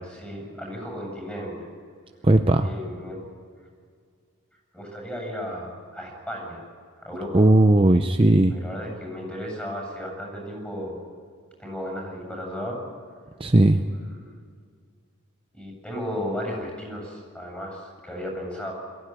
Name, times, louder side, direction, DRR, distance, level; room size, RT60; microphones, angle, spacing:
voice 1, 0.0-1.7 2.6-3.2 4.7-6.6 7.0-7.5 8.5-11.0 11.6-12.8 13.7-14.3 15.5-18.7, equal, 10° left, 0 dB, 7.8 m, -34 dB
voice 2, 2.2-2.7 7.3-8.5 13.4-13.8, right 1 dB, 25° right, 6 dB, 0.6 m, -17 dB
22.5 x 15.5 x 9.6 m, 2.1 s
head